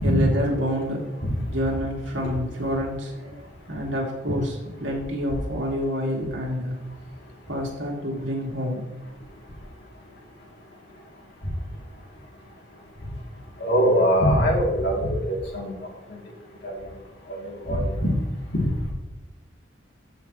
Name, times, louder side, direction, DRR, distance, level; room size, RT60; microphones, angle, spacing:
voice 1, 0.0-1.2 1.5-6.8 7.5-8.9, equal, 75° right, -1 dB, 2.6 m, -28 dB
voice 2, 13.6-15.7 16.1-16.2 16.6-16.7 17.4-18.1 18.5-18.7, equal, 65° left, -2 dB, 2.8 m, -22 dB
14.0 x 5.6 x 3.1 m, 1.1 s
head